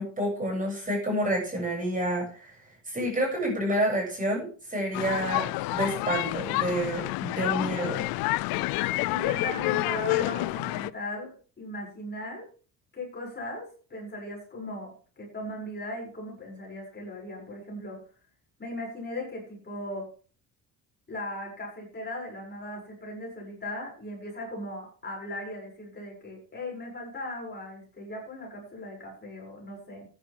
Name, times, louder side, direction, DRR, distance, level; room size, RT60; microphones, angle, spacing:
voice 1, 0.0-2.5 2.9-8.0, right 1 dB, 20° right, -1 dB, 7.6 m, -29 dB
sound 1, 4.9-10.9, left 21 dB, 80° left, 0.6 m, -29 dB
voice 2, 9.1-12.5 12.9-18.0 18.6-20.1 21.1-30.1, left 1 dB, 30° left, -2 dB, 7.2 m, -38 dB
13.5 x 10.5 x 3.7 m, 0.39 s
cardioid pair, 100°, 35 cm